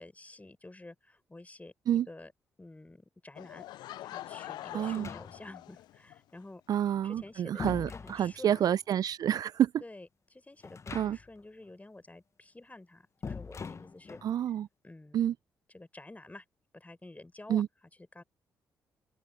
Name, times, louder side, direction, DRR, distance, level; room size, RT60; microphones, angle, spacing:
voice 1, 0.0-2.3 2.6-3.6 4.0-6.6 7.0-8.8 9.8-14.2 14.8-15.2 15.7-16.4 16.7-17.6 18.1-18.2, left 2 dB, 20° left, 6.2 m, -50 dB
Laughter / Crowd, 3.4-6.2, left 14 dB, 70° left, 0.4 m, -44 dB
voice 2, 4.7-5.1 6.7-9.7 10.9-11.2 14.2-14.7 15.1-15.3 17.5-17.7, right 10 dB, 60° right, 0.3 m, -28 dB
sound 1, 4.8-5.7 6.9-8.8 10.6-11.4 11.7-11.8 13.2-14.3, left 5 dB, 40° left, 0.8 m, -42 dB
open air
hypercardioid pair, 45°, 8 cm